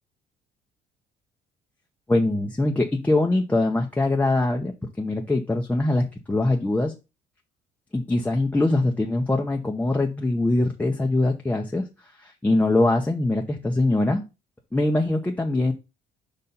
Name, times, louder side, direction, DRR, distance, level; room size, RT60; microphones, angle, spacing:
voice 1, 2.1-6.9 7.9-11.9 12.2-14.2 14.7-15.7, left 2 dB, 10° left, 0 dB, 0.8 m, -23 dB
5.3 x 4.3 x 5.3 m, 0.27 s
cardioid pair, 110°, 17 cm